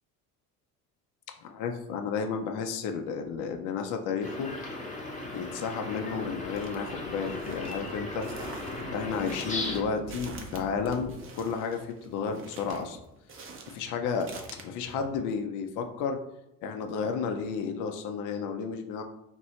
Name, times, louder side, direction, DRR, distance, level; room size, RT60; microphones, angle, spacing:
voice 1, 1.4-4.5 5.3-8.3 8.9-13.0 13.7-16.2 16.6-19.0, left 5 dB, 45° left, 5 dB, 0.5 m, -32 dB
sound 1, 4.2-9.8, left 2 dB, 15° left, 0.9 m, -37 dB
sound 2, 6.0-11.2, right 2 dB, 55° right, 1.1 m, -47 dB
sound 3, 6.6-6.8 7.3-14.6, right 4 dB, 30° right, 0.6 m, -46 dB
3.0 x 2.6 x 2.8 m, 0.86 s
hypercardioid pair, 65°, 45 cm